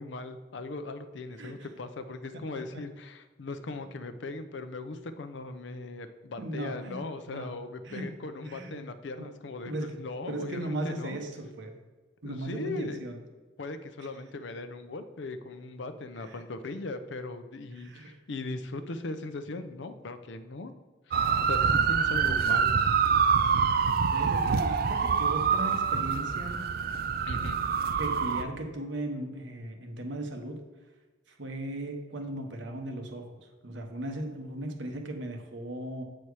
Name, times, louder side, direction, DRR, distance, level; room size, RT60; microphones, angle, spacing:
voice 1, 0.0-11.2 12.2-13.1 13.6-20.7 21.1-21.2 21.5-22.7 27.3-27.6, left 3 dB, 70° left, 9 dB, 0.6 m, -39 dB
voice 2, 6.4-7.5 7.8-8.1 8.4-8.8 9.2-9.3 9.6-9.9 10.3-11.8 12.2-13.2 16.3-16.4 17.7-18.2 18.7-18.8 21.1-21.3 22.1-22.4 23.7-26.6 28.0-30.6 31.3-33.3 33.6-36.0, right 1 dB, 70° right, 4 dB, 1.1 m, -37 dB
sound 1, 21.1-28.4, right 6 dB, 50° right, 0.4 m, -26 dB
8.1 x 4.3 x 4.8 m, 1.3 s
head